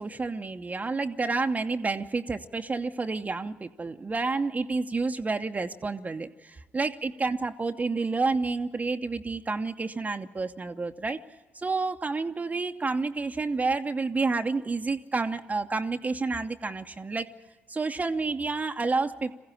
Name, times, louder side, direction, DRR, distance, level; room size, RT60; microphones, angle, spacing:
voice 1, 0.0-11.2 11.5-17.3 17.7-19.4, right 3 dB, 25° right, 5 dB, 0.8 m, -29 dB
22.0 x 15.5 x 9.8 m, 1.3 s
hypercardioid pair, 50°, 6 cm